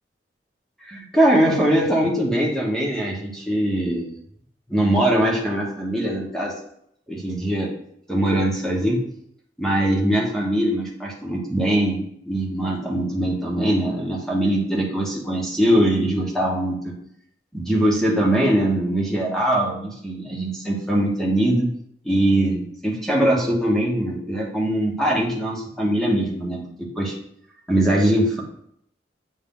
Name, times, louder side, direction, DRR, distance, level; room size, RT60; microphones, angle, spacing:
voice 1, 0.9-4.2 4.7-6.5 7.1-7.7 8.1-9.0 9.6-16.9 17.5-21.7 22.0-26.6 27.0-27.2 27.7-28.4, right 1 dB, ahead, -3 dB, 1.1 m, -22 dB
8.4 x 3.2 x 3.7 m, 0.70 s
head